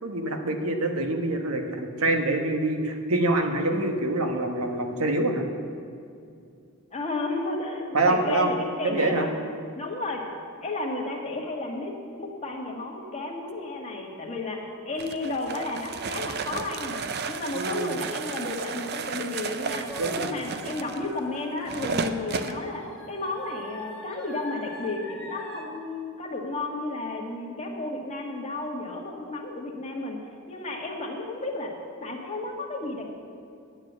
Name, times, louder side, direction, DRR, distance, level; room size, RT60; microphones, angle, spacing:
voice 1, 0.0-5.5 7.9-8.5 8.8-9.3 17.5-17.9 20.0-20.4, right 2 dB, 75° right, 4 dB, 1.2 m, -25 dB
voice 2, 6.9-9.3 9.7-10.3 10.6-17.0 17.3-19.9 20.2-30.2 30.5-31.7 32.0-33.1, left 2 dB, 30° left, 0 dB, 1.6 m, -33 dB
sound 1, 15.0-22.6, right 5 dB, 50° right, 0.6 m, -33 dB
sound 2, 19.9-25.6, left 1 dB, 5° left, 1.5 m, -42 dB
9.5 x 8.9 x 8.0 m, 2.5 s
head